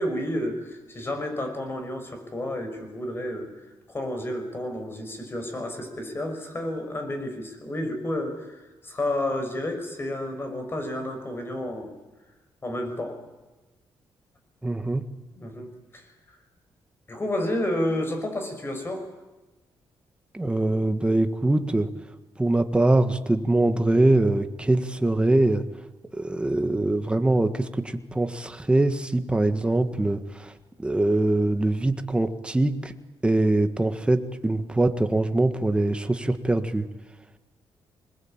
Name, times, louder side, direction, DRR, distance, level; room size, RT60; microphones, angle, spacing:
voice 1, 0.0-3.5 3.9-11.9 12.6-13.2 15.3-15.7 15.9-16.1 17.1-19.1, left 1 dB, 25° left, 6 dB, 5.7 m, -30 dB
voice 2, 14.6-15.0 20.3-21.9 22.4-25.6 26.1-30.5 30.8-32.9 33.2-36.8, right 2 dB, 10° right, 8 dB, 1.6 m, -23 dB
26.5 x 20.5 x 8.9 m, 1.1 s
wide cardioid pair, 135°, 9 cm